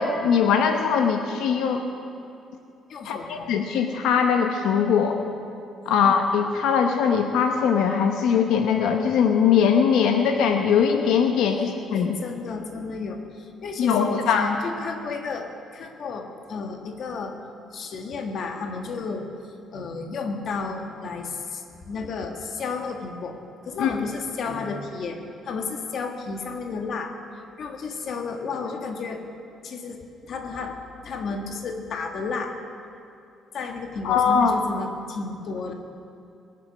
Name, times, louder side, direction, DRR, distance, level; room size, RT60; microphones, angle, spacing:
voice 1, 0.0-1.9 3.0-5.2 5.9-12.2 13.8-14.5 23.8-23.9 34.0-34.6, left 7 dB, 85° left, 5 dB, 0.9 m, -21 dB
voice 2, 2.9-3.5 5.8-5.9 11.5-11.6 11.9-17.3 17.7-19.2 19.7-23.3 23.6-25.2 25.4-27.1 27.6-29.2 29.6-30.0 30.3-32.5 33.5-35.7, left 4 dB, 50° left, 4 dB, 1.5 m, -32 dB
21.0 x 9.4 x 6.2 m, 2.5 s
cardioid pair, 150°, 0 cm